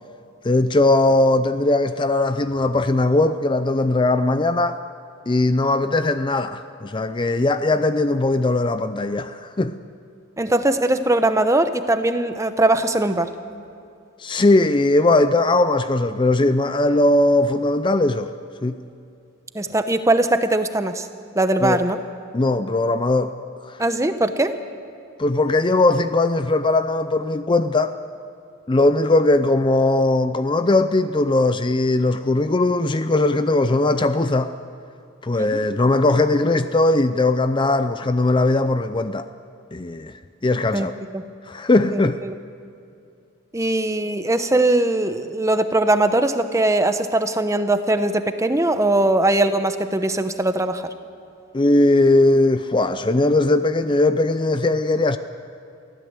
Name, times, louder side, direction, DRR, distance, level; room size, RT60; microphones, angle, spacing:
voice 1, 0.4-4.8 5.3-9.8 14.2-18.3 18.6-18.8 21.6-21.8 22.3-23.3 23.6-23.8 25.2-27.9 28.7-34.5 35.2-39.3 39.7-40.9 41.5-42.2 51.5-55.2, left 2 dB, 25° left, 0.5 m, -19 dB
voice 2, 10.4-13.3 19.5-21.1 21.3-22.0 23.8-24.6 35.4-35.5 40.7-40.9 41.1-41.2 41.9-42.3 43.5-50.9, right 2 dB, 15° right, 0.9 m, -20 dB
23.5 x 15.5 x 8.1 m
head